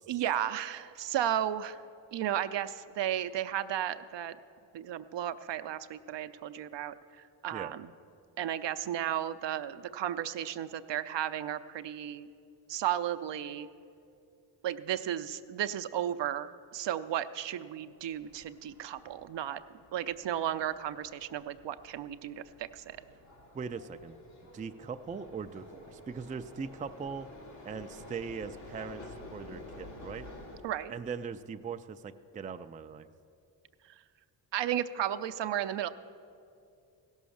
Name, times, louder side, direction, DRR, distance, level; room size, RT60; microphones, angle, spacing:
voice 1, 0.1-1.8 2.1-4.4 4.7-6.9 7.4-7.9 8.4-12.3 12.7-13.7 14.6-19.6 19.9-23.0 30.6-30.9 34.5-35.9, right 11 dB, 65° right, 11 dB, 0.6 m, -34 dB
sound 1, 18.0-30.6, left 2 dB, 85° left, 2.3 m, -51 dB
voice 2, 23.5-24.2 24.5-27.3 27.6-29.0 29.3-30.3 30.9-33.1, right 6 dB, 20° right, 8 dB, 0.3 m, -40 dB
16.0 x 6.4 x 7.1 m, 2.5 s
cardioid pair, 65°, 47 cm